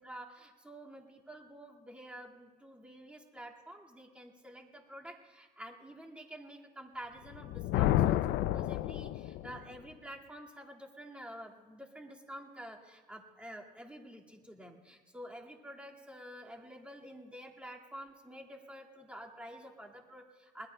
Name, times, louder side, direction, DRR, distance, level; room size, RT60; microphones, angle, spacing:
voice 1, 0.0-20.7, equal, 5° right, -2 dB, 2.0 m, -49 dB
Thunder, 7.3-9.6, left 14 dB, 80° left, 0.4 m, -30 dB
25.5 x 20.5 x 2.2 m, 1.3 s
cardioid pair, 110°, 17 cm